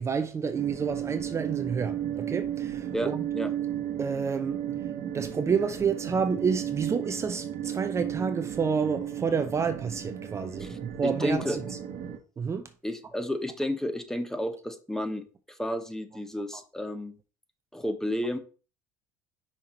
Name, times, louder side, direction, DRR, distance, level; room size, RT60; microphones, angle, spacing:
voice 1, 0.0-3.3 4.0-4.6 5.1-11.8 12.4-12.7, right 6 dB, 30° right, 0.6 m, -29 dB
sound 1, 0.5-12.2, right 10 dB, 60° right, 1.2 m, -34 dB
voice 2, 2.9-3.5 10.6-11.6 12.8-17.1 17.7-18.4, equal, 5° left, 1.1 m, -32 dB
5.7 x 4.8 x 4.3 m
hypercardioid pair, 70°, 9 cm